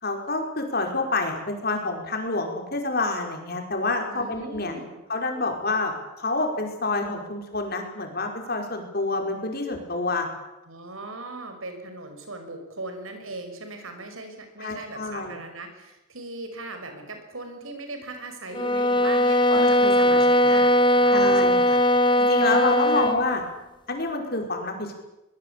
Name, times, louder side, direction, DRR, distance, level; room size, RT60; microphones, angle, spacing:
voice 1, 0.0-4.7 5.1-10.3 14.6-15.4 19.5-20.5 21.1-21.8 22.2-23.4 23.9-24.9, left 2 dB, 50° left, 3 dB, 5.2 m, -28 dB
voice 2, 4.1-5.0 10.6-21.8 22.4-23.1, right 2 dB, 90° right, 6 dB, 5.9 m, -39 dB
sound 1, 18.5-23.3, left 1 dB, 25° left, 1.6 m, -19 dB
23.5 x 21.5 x 8.4 m, 0.97 s
head